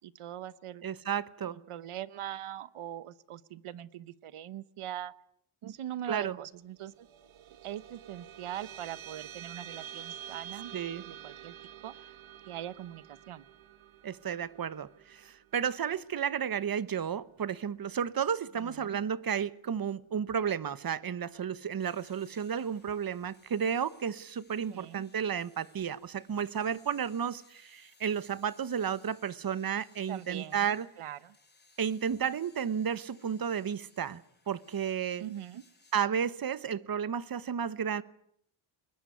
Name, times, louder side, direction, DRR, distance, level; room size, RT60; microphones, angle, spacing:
voice 1, 0.0-0.8 1.5-5.1 5.6-7.1 7.6-10.7 11.1-11.5 11.8-11.9 12.5-13.4 18.6-19.0 24.7-25.0 30.1-30.7 31.0-31.3 35.2-35.6, right 11 dB, 90° right, 1.1 m, -41 dB
voice 2, 0.8-1.6 6.1-6.4 10.7-11.0 14.0-30.9 31.8-35.2 35.9-38.0, right 8 dB, 45° right, 1.1 m, -32 dB
sound 1, 6.8-17.5, right 10 dB, 70° right, 1.4 m, -49 dB
sound 2, 21.8-35.9, left 3 dB, 20° left, 7.1 m, -64 dB
21.5 x 21.5 x 9.5 m
wide cardioid pair, 120°, 49 cm